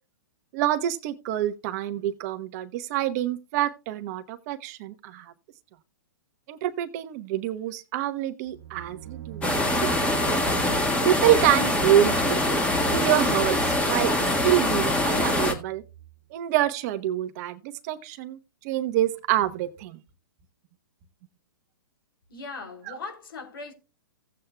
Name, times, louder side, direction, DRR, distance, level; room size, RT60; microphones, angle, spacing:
voice 1, 0.5-5.3 6.5-9.5 9.8-10.0 11.0-12.4 12.9-15.8 16.3-18.4 18.6-20.0 22.9-23.0, right 12 dB, 45° right, 1.1 m, -26 dB
sound 1, 8.5-16.2, right 12 dB, 75° right, 1.5 m, -40 dB
sound 2, 9.4-15.5, left 1 dB, 10° left, 1.6 m, -24 dB
voice 2, 22.3-23.7, left 4 dB, 75° left, 3.4 m, -39 dB
16.0 x 8.2 x 2.3 m
hypercardioid pair, 130°, 12 cm